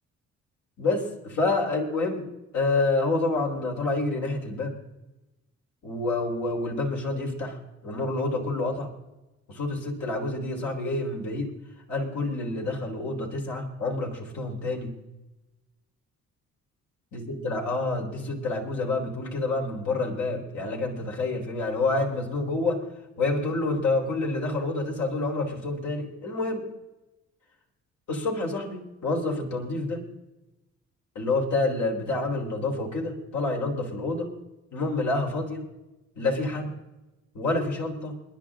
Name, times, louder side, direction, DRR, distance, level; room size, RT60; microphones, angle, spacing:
voice 1, 0.8-4.8 5.8-8.9 9.5-11.5 11.9-15.0 17.1-22.8 23.2-26.7 28.1-30.1 31.1-34.3 34.7-35.7 36.2-36.8 37.3-38.2, left 2 dB, 70° left, 0 dB, 4.1 m, -28 dB
29.5 x 10.5 x 3.8 m, 1.0 s
cardioid pair, 90°, 30 cm